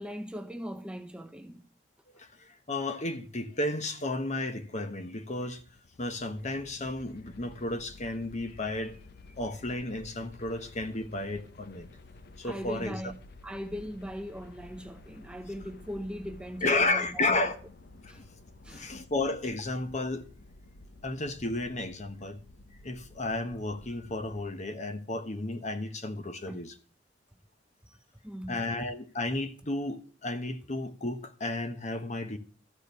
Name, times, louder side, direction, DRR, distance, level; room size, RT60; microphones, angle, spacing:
voice 1, 0.0-1.7 8.6-8.7 12.4-13.2 13.4-17.5 18.1-18.2 18.6-19.0 26.5-26.6 27.9-28.0 28.2-28.6, equal, 5° right, 0.6 m, -40 dB
voice 2, 2.1-5.6 6.0-9.0 9.4-11.9 12.4-13.0 16.6-17.6 18.0-18.2 18.7-20.2 21.0-22.4 22.8-26.7 28.5-32.4, left 2 dB, 40° left, 1.2 m, -33 dB
sound 1, 5.1-24.5, left 2 dB, 55° left, 0.8 m, -52 dB
13.5 x 4.8 x 8.2 m
head